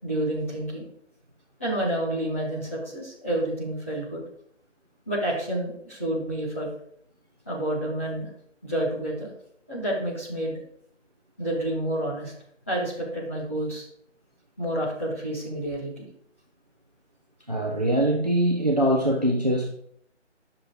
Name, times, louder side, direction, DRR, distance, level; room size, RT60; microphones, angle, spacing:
voice 1, 0.0-0.8 1.6-4.2 5.1-6.7 7.4-8.3 8.6-9.3 9.7-10.6 11.4-12.3 12.7-13.8 14.6-16.1, right 1 dB, 10° left, -10 dB, 2.5 m, -29 dB
voice 2, 17.5-19.7, right 1 dB, 35° right, 1 dB, 1.0 m, -23 dB
11.5 x 6.6 x 4.8 m, 0.67 s
figure-of-eight pair, 180°, 37 cm